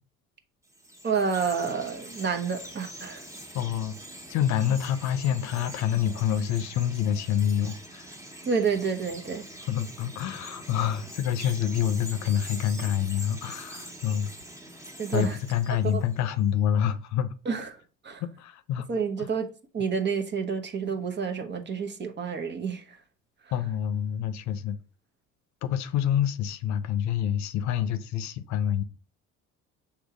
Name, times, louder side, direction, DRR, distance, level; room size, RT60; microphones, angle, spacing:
Chirp tweet, 0.7-16.3, right 1 dB, 10° right, 1.3 m, -44 dB
voice 1, 1.0-3.2 8.4-9.4 15.0-15.4 15.9-16.0 17.4-17.7 18.0-18.2 18.9-19.5 19.7-23.0, right 5 dB, 35° right, 1.1 m, -29 dB
voice 2, 3.5-4.0 4.3-8.1 9.7-14.3 15.1-17.3 18.2-18.9 19.2-19.3 23.5-24.8 25.6-28.8, left 9 dB, 65° left, 0.7 m, -27 dB
6.3 x 3.0 x 5.0 m
supercardioid pair, 90°, 30 cm